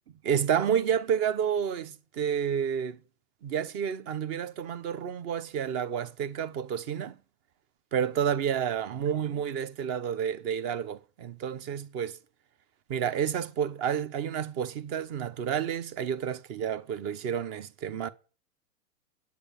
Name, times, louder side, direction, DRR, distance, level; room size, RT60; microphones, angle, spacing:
voice 1, 0.2-3.0 3.4-7.2 7.9-12.2 12.9-18.1, right 8 dB, 30° right, 0.9 m, -30 dB
9.7 x 8.2 x 7.1 m
hypercardioid pair, 125°, 48 cm